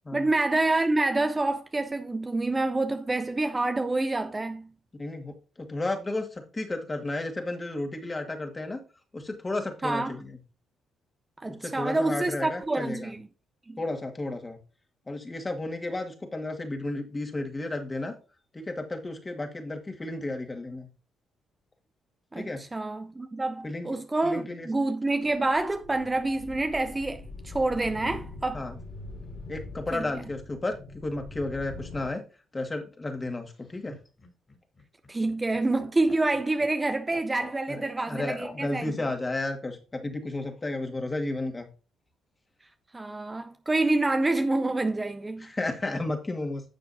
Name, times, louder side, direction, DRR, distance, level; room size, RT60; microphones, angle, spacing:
voice 1, 0.1-4.7 9.8-10.2 11.4-13.3 13.7-13.8 22.3-28.6 29.9-30.1 35.1-38.9 42.9-45.5, right 2 dB, 20° right, 0.6 m, -27 dB
voice 2, 5.0-8.8 9.1-10.4 11.5-13.1 13.8-14.6 15.1-18.1 18.5-20.9 22.3-22.6 23.6-23.9 24.2-24.7 28.5-28.8 29.5-32.2 32.5-33.9 37.7-41.7 45.4-46.6, left 2 dB, 20° left, 1.9 m, -33 dB
sound 1, 25.2-32.1, left 2 dB, 60° left, 3.7 m, -43 dB
Laughter, 33.5-39.1 40.4-41.1, left 3 dB, 40° left, 3.0 m, -48 dB
10.5 x 6.9 x 2.7 m
cardioid pair, 90°, 0 cm